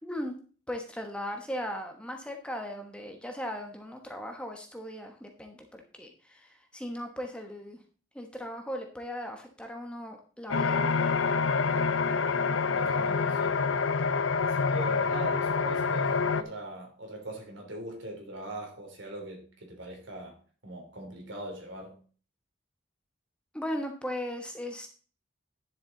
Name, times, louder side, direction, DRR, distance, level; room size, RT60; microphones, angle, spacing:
voice 1, 0.0-0.3 0.7-7.8 8.1-11.0 23.5-24.9, equal, 5° left, 1.2 m, -38 dB
sound 1, 10.5-16.4, left 5 dB, 75° left, 0.7 m, -27 dB
voice 2, 12.7-13.6 14.4-22.0, right 1 dB, 70° right, 3.4 m, -41 dB
10.5 x 7.2 x 3.9 m
head